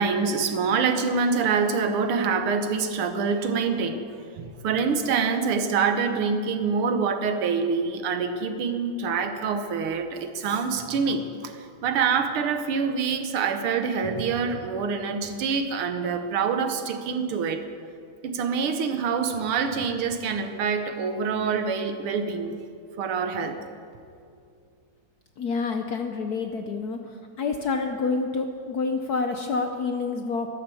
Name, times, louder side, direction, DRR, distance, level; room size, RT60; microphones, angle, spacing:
voice 1, 0.0-4.0 4.4-17.6 18.2-22.5 23.0-23.6, right 5 dB, 80° right, 7 dB, 1.9 m, -26 dB
voice 2, 25.4-27.0 27.4-30.5, left 4 dB, 65° left, 5 dB, 1.0 m, -28 dB
13.0 x 12.0 x 6.9 m, 2.4 s
omnidirectional pair, 2.4 m